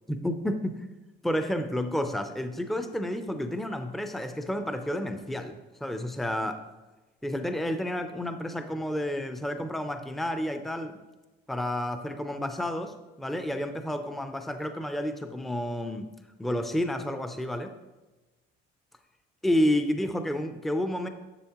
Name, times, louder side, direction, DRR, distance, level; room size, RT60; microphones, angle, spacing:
voice 1, 0.1-0.8 1.2-6.6 7.2-10.9 11.5-16.1 16.4-17.7 19.4-21.1, left 1 dB, ahead, 8 dB, 0.4 m, -30 dB
10.5 x 7.2 x 2.9 m, 1.1 s
cardioid pair, 145°, 20 cm